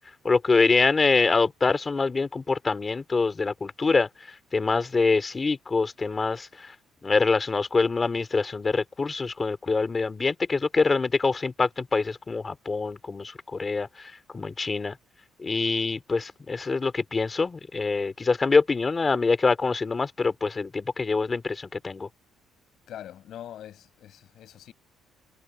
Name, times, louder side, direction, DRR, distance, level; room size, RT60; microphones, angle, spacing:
voice 1, 0.2-4.1 4.5-6.5 7.0-13.9 14.3-14.9 15.4-22.1, left 4 dB, 25° left, 3.2 m, -25 dB
voice 2, 22.9-24.7, left 11 dB, 60° left, 7.6 m, -43 dB
cardioid pair, 135°, 0 cm